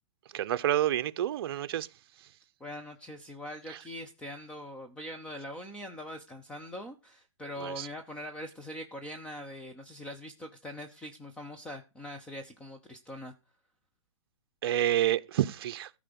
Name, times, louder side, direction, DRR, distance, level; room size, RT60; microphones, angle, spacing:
voice 1, 0.3-1.9 3.7-3.8 7.6-7.9 14.6-15.9, right 12 dB, 50° right, 0.7 m, -28 dB
voice 2, 2.6-13.3, equal, 5° left, 0.7 m, -42 dB
14.0 x 5.0 x 6.8 m
hypercardioid pair, 155°, 16 cm